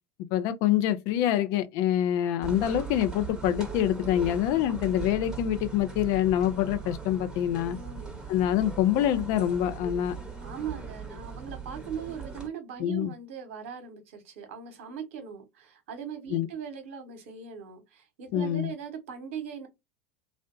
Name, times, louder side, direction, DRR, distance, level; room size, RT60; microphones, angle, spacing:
voice 1, 0.3-7.8 8.3-10.2 12.8-13.1 16.3-16.5 18.3-18.7, left 11 dB, 55° left, 0.4 m, -26 dB
sound 1, 2.4-12.5, right 5 dB, 10° right, 0.9 m, -39 dB
voice 2, 7.7-8.2 10.4-19.7, right 7 dB, 65° right, 0.9 m, -39 dB
2.6 x 2.1 x 2.4 m
hypercardioid pair, 80°, 7 cm